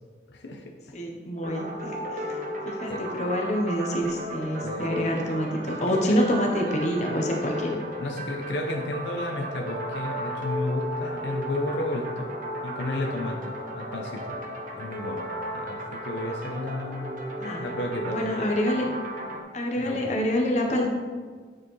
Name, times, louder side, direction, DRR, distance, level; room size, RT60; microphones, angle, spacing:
voice 1, 0.3-0.6 2.9-3.0 4.6-4.9 8.0-12.3 12.6-14.4 14.8-15.2 15.5-17.2 17.6-18.2 19.8-20.1, left 1 dB, 75° left, 1 dB, 0.7 m, -32 dB
voice 2, 0.9-2.4 2.6-7.8 13.7-13.9 17.4-17.6 18.0-18.9 19.5-20.9, equal, 40° left, 0 dB, 0.9 m, -27 dB
sound 1, 1.4-19.4, equal, 45° right, 0.8 m, -34 dB
8.5 x 4.5 x 3.2 m, 1.5 s
head